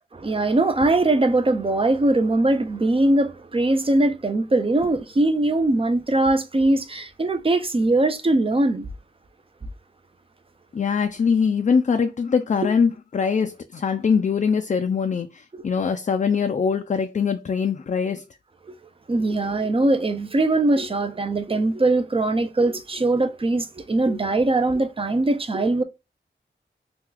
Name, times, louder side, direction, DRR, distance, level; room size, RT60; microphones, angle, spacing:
voice 1, 0.1-8.9 12.6-12.7 18.7-18.8 19.1-25.8, right 2 dB, 30° right, 0.5 m, -21 dB
voice 2, 10.7-18.2, left 6 dB, 40° left, 0.4 m, -22 dB
2.9 x 2.3 x 3.7 m
wide cardioid pair, 85°, 19 cm